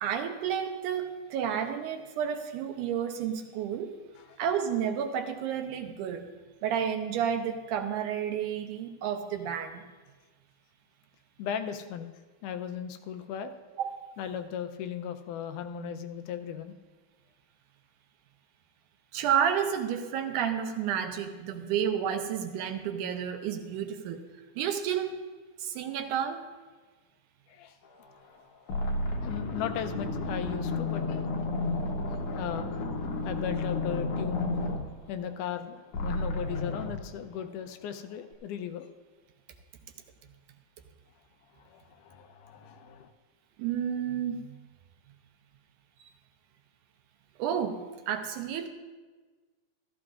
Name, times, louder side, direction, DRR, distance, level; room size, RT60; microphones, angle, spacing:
voice 1, 0.0-3.9 4.4-6.3 6.6-9.9 13.8-14.0 19.1-24.2 24.6-25.2 25.6-26.4 43.6-44.5 46.0-46.1 47.4-48.7, right 8 dB, 80° right, 6 dB, 2.3 m, -31 dB
voice 2, 11.4-12.1 12.4-13.5 14.2-16.8 27.5-27.8 29.2-31.3 32.1-32.8 33.2-34.8 35.1-38.9 41.6-43.1, left 8 dB, 90° left, 8 dB, 2.2 m, -37 dB
sound 1, 28.1-28.3 28.7-35.6 35.9-37.0, left 2 dB, 65° left, 1.5 m, -32 dB
14.5 x 13.5 x 2.4 m, 1.3 s
omnidirectional pair, 3.6 m